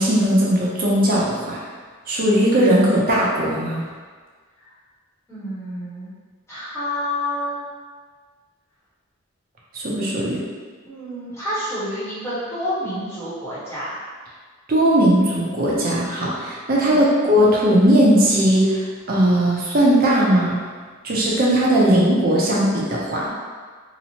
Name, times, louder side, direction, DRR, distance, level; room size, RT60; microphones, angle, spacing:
voice 1, 0.0-1.6 2.1-3.8 9.7-10.4 14.7-20.6 21.0-23.3, right 1 dB, 40° right, -5 dB, 0.5 m, -18 dB
voice 2, 5.3-6.1 6.5-7.6 10.8-14.0 16.8-17.0, left 1 dB, 10° left, -12 dB, 0.9 m, -28 dB
2.9 x 2.0 x 2.8 m, 1.5 s
head